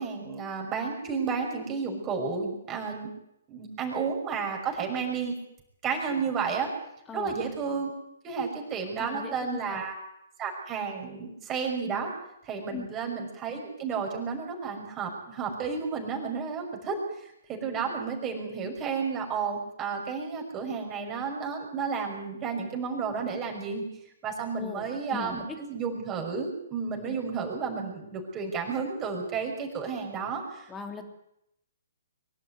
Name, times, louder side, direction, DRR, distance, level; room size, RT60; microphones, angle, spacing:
voice 1, 0.0-3.1 3.5-5.4 5.8-6.7 7.1-7.9 8.2-9.9 10.4-12.1 12.4-23.8 24.2-30.7, right 5 dB, 25° right, 1 dB, 5.8 m, -32 dB
voice 2, 9.0-9.8 12.7-12.9 24.6-25.4 30.7-31.1, left 6 dB, 15° left, 5 dB, 3.0 m, -39 dB
23.5 x 12.0 x 9.7 m, 0.80 s
figure-of-eight pair, 125°, 0 cm